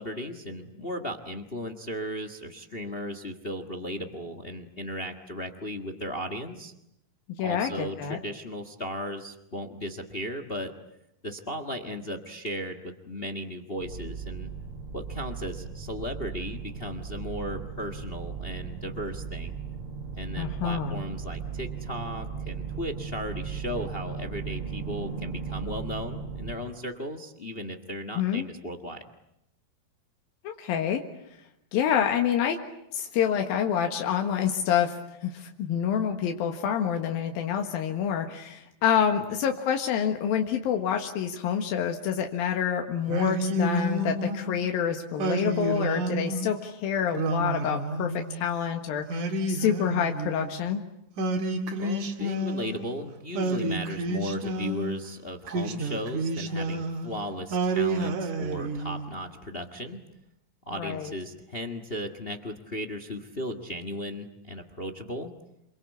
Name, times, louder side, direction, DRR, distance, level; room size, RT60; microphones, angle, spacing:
voice 1, 0.0-6.7 7.4-10.7 11.2-14.5 14.9-19.5 20.2-29.0 39.2-39.3 51.8-60.0 60.7-65.3, equal, 40° left, 9 dB, 0.8 m, -36 dB
voice 2, 7.4-8.2 20.4-21.0 28.1-28.5 30.4-31.0 31.7-32.6 32.9-50.8 60.8-61.1, left 8 dB, 90° left, 5 dB, 3.4 m, -27 dB
sound 1, 13.8-26.5, right 6 dB, 40° right, 3.3 m, -37 dB
Singing, 43.1-44.6 45.2-46.5 47.1-48.4 49.1-50.6 51.2-52.9 53.3-55.0 55.5-57.1 57.5-59.1, right 1 dB, 65° right, 3.3 m, -29 dB
28.0 x 23.5 x 8.4 m, 0.82 s
omnidirectional pair, 4.1 m